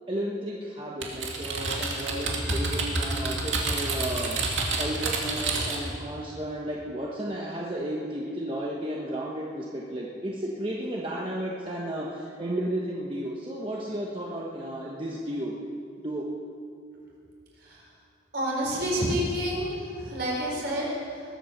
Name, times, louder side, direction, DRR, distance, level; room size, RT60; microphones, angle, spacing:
voice 1, 0.1-4.4 4.8-15.5 16.0-16.3, right 1 dB, 25° right, -3 dB, 1.2 m, -33 dB
Typing, 1.0-5.9, right 3 dB, 80° right, 2.4 m, -29 dB
voice 2, 18.3-21.2, equal, 55° right, -3 dB, 4.4 m, -29 dB
21.0 x 8.7 x 6.7 m, 2.5 s
head